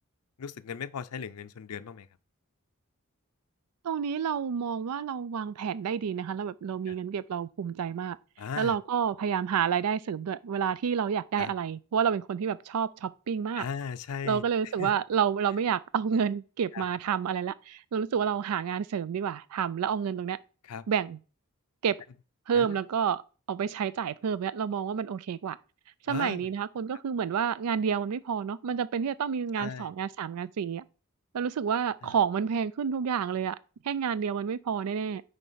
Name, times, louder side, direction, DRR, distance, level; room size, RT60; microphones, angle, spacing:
voice 1, 0.4-2.1 6.9-7.0 8.4-8.8 11.4-11.5 13.6-14.9 16.7-16.8 20.6-20.8 22.5-22.8 26.1-26.5 29.5-29.9 32.0-32.2, left 6 dB, 85° left, 0.5 m, -37 dB
voice 2, 3.8-8.2 8.6-13.7 14.2-20.4 20.9-21.2 21.8-22.0 22.5-23.2 23.5-25.6 26.1-30.8 31.3-33.6 33.8-35.2, right 7 dB, 85° right, 0.4 m, -29 dB
9.2 x 3.3 x 5.5 m
head